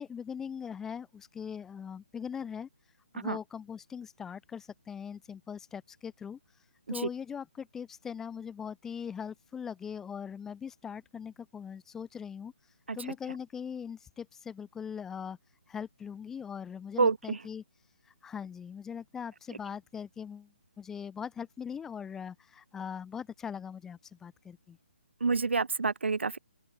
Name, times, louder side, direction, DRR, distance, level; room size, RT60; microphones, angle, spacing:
voice 1, 0.0-2.7 3.1-6.4 6.9-12.5 12.9-15.4 15.7-17.6 18.1-20.5 20.8-24.8, left 7 dB, 5° left, 0.4 m, -41 dB
voice 2, 17.0-17.4 25.2-26.4, right 4 dB, 85° right, 0.9 m, -28 dB
open air
hypercardioid pair, 155°, 6 cm